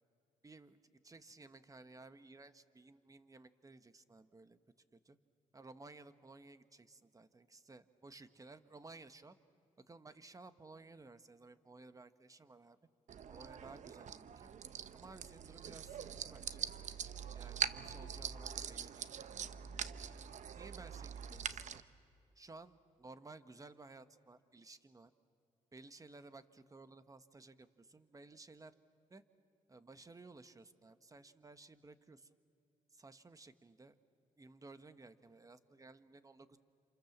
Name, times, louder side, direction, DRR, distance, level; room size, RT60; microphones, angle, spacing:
voice 1, 0.4-0.8 1.0-4.6 4.9-5.2 5.5-9.4 9.9-12.8 13.3-14.5 14.9-16.7 17.3-19.3 20.5-21.8 22.3-25.1 25.7-28.7 29.1-29.2 29.7-32.4 32.9-33.9 34.4-36.6, right 3 dB, 25° right, 11 dB, 1.4 m, -57 dB
sound 1, 13.1-21.8, right 8 dB, 60° right, 0.9 m, -43 dB
28.0 x 27.5 x 7.4 m, 2.8 s
cardioid pair, 70°, 14 cm